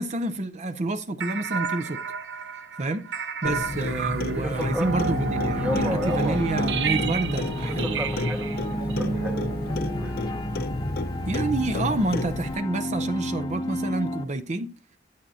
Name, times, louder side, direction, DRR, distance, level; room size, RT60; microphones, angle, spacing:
voice 1, 0.0-2.0 2.8-3.1 3.4-8.0 11.3-14.7, right 2 dB, 40° right, 0.6 m, -28 dB
sound 1, 1.2-10.1, right 4 dB, 85° right, 0.8 m, -31 dB
Clock, 3.4-12.5, left 2 dB, 60° left, 0.7 m, -31 dB
voice 2, 4.3-4.9 5.5-6.4 7.6-9.5 10.0-10.2, equal, 10° right, 0.8 m, -33 dB
sound 2, 5.1-14.2, equal, 25° left, 0.9 m, -32 dB
8.7 x 8.6 x 2.7 m
head